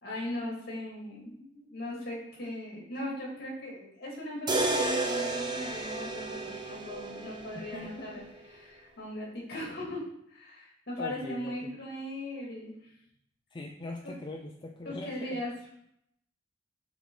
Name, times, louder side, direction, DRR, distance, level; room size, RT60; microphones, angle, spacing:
voice 1, 0.0-8.2 8.5-12.9 14.0-14.1 14.9-15.5, left 1 dB, 55° left, -3 dB, 2.2 m, -39 dB
sound 1, 4.5-8.5, right 2 dB, 25° right, 0.7 m, -32 dB
voice 2, 7.5-8.1 11.0-11.8 13.5-15.4, left 2 dB, 25° left, 0 dB, 0.5 m, -41 dB
7.0 x 3.7 x 3.8 m, 0.74 s
head